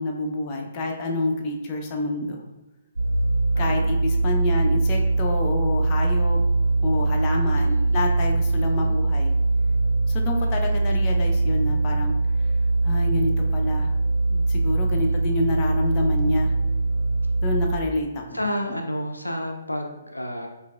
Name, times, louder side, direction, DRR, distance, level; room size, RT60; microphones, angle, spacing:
voice 1, 0.0-2.4 3.6-6.4 6.8-9.3 10.1-12.1 12.8-13.9 14.3-16.5 17.4-18.1, left 2 dB, 30° left, 1 dB, 0.5 m, -28 dB
sound 1, 3.0-17.7, right 3 dB, 80° right, 0.5 m, -22 dB
voice 2, 3.5-3.9 7.5-8.0 8.6-9.0 10.4-10.8 14.9-15.2 18.3-20.5, equal, 85° left, 3 dB, 0.4 m, -32 dB
4.7 x 2.5 x 2.3 m, 1.0 s
figure-of-eight pair, 125°, 0 cm